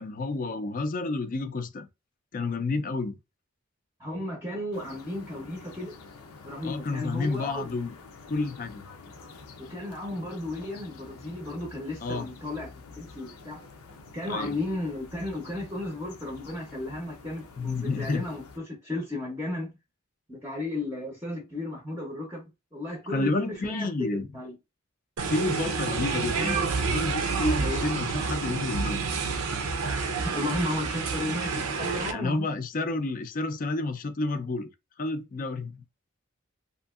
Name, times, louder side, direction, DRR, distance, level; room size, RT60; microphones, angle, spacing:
voice 1, 0.0-1.9 2.3-3.2 6.6-7.9 8.3-8.8 12.0-12.3 14.3-14.5 17.6-18.2 23.1-24.3 25.3-26.6 26.9-29.0 32.1-34.7 35.0-35.8, left 3 dB, 40° left, 0.4 m, -30 dB
voice 2, 4.0-5.9 6.4-7.7 9.6-13.6 14.1-19.7 20.3-24.5 27.6-27.8 30.2-32.5, left 1 dB, 10° right, 0.6 m, -34 dB
sound 1, 4.7-18.6, left 4 dB, 90° left, 0.6 m, -48 dB
sound 2, 25.2-32.1, right 4 dB, 80° right, 0.6 m, -29 dB
2.8 x 2.6 x 2.3 m
head